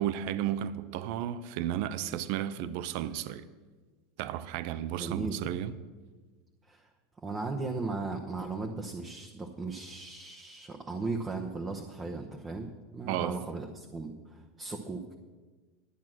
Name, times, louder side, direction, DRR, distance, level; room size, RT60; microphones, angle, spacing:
voice 1, 0.0-3.5 4.2-5.7 13.1-13.4, right 11 dB, 60° right, 0.6 m, -33 dB
voice 2, 5.0-5.4 6.6-6.9 7.2-15.1, right 3 dB, 15° right, 0.9 m, -37 dB
11.0 x 9.3 x 6.2 m
supercardioid pair, 135°, 0 cm